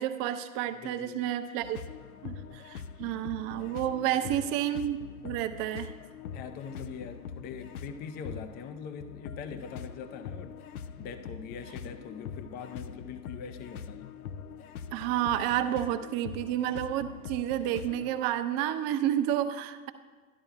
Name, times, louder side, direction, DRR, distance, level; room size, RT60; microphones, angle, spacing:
voice 1, 0.0-1.8 2.2-5.0 5.2-5.9 14.9-19.9, right 11 dB, 40° right, 9 dB, 0.7 m, -30 dB
voice 2, 0.7-1.2 4.0-4.4 6.3-10.6 11.0-14.1, left 6 dB, 25° left, 9 dB, 0.5 m, -42 dB
sound 1, 1.6-18.2, left 6 dB, 80° left, 0.5 m, -43 dB
13.0 x 11.0 x 2.3 m, 1.4 s
hypercardioid pair, 100°, 43 cm